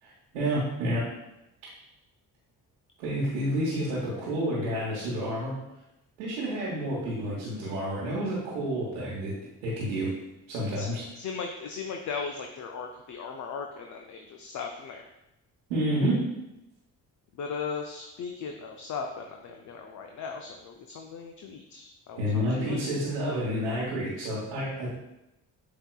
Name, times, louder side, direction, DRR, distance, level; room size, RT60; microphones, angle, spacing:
voice 1, 0.0-1.1 3.0-5.5 6.2-9.3 9.6-10.1 10.5-11.0 15.7-16.3 22.2-24.9, equal, 90° right, -7 dB, 1.1 m, -29 dB
voice 2, 11.2-15.0 17.4-22.9, left 5 dB, 45° left, 3 dB, 0.5 m, -37 dB
7.7 x 2.8 x 2.3 m, 0.89 s
hypercardioid pair, 50°, 44 cm